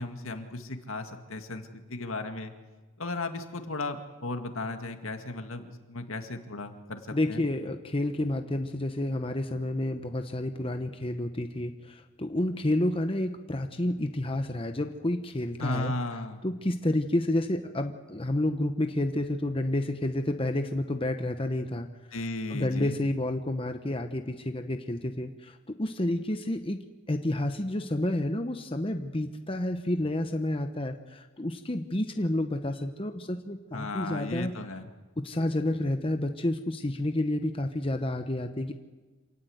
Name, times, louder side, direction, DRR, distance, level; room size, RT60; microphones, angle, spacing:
voice 1, 0.0-2.5 3.0-7.4 15.6-16.4 22.1-23.0 33.7-34.9, left 2 dB, 75° left, 6 dB, 2.1 m, -35 dB
voice 2, 7.1-15.9 16.4-21.9 22.5-26.8 27.1-34.5 35.2-38.7, left 1 dB, 25° left, 6 dB, 0.9 m, -30 dB
27.0 x 18.5 x 8.0 m, 1.3 s
head